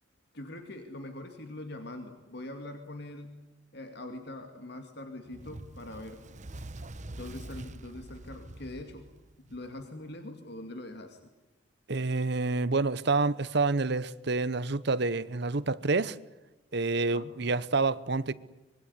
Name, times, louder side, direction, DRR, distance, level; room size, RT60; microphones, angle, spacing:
voice 1, 0.3-3.4 3.7-6.2 7.2-9.0 9.4-11.3 17.1-17.4, left 1 dB, 60° left, 2.3 m, -43 dB
Fire, 5.3-9.8, right 2 dB, 40° right, 1.0 m, -45 dB
voice 2, 11.9-16.2 16.7-18.3, right 3 dB, 60° right, 1.0 m, -28 dB
25.0 x 22.5 x 9.8 m
head